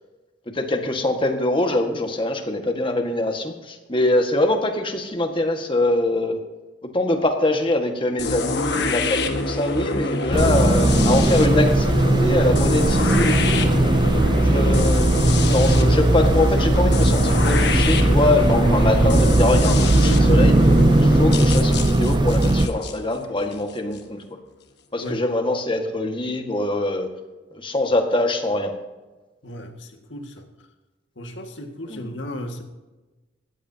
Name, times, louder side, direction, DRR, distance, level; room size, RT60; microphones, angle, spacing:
voice 1, 0.5-6.4 6.9-13.6 14.4-20.7 21.0-24.2 24.9-27.1 27.5-28.7 31.9-32.1, left 2 dB, 30° left, 4 dB, 1.7 m, -23 dB
sound 1, 8.2-24.0, left 2 dB, 65° left, 1.5 m, -26 dB
sound 2, 10.3-22.7, right 1 dB, 25° right, 0.5 m, -18 dB
voice 2, 29.4-30.5 31.2-32.6, left 1 dB, 85° left, 4 dB, 2.0 m, -35 dB
18.5 x 14.5 x 2.9 m, 1.2 s
head